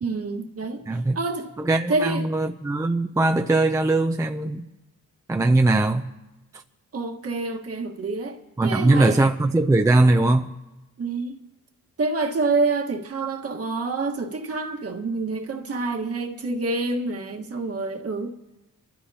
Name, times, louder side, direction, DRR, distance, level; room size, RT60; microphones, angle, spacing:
voice 1, 0.0-1.5 1.9-2.2 6.9-8.4 8.6-9.2 11.0-11.4 12.0-18.3, right 3 dB, 45° right, 1.4 m, -27 dB
voice 2, 0.9-1.2 1.6-4.6 5.3-6.1 6.5-6.6 8.6-10.5, right 2 dB, 10° right, 0.4 m, -20 dB
29.0 x 13.0 x 2.8 m
wide cardioid pair, 125°, 32 cm